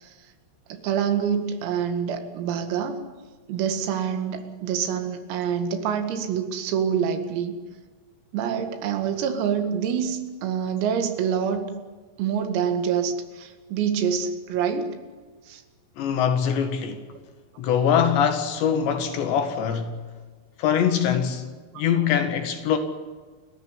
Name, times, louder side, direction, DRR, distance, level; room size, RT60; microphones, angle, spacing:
voice 1, 0.7-3.0 3.5-7.6 8.3-11.7 12.2-15.0 15.5-15.6, right 7 dB, 90° right, 4.8 m, -26 dB
voice 2, 16.0-17.0 17.6-20.0 20.6-21.5 21.8-22.8, left 8 dB, 65° left, 3.8 m, -23 dB
30.0 x 14.5 x 9.9 m
omnidirectional pair, 5.9 m